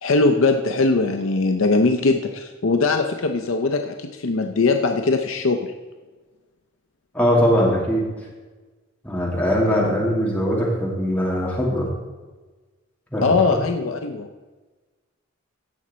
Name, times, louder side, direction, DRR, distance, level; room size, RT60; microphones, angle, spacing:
voice 1, 0.0-5.7 9.7-9.9 13.2-14.3, left 3 dB, 80° left, 5 dB, 0.7 m, -21 dB
voice 2, 7.1-8.0 9.0-11.9 13.1-13.2 13.5-13.6, equal, 10° left, -4 dB, 2.5 m, -21 dB
16.0 x 6.1 x 4.3 m, 1.3 s
head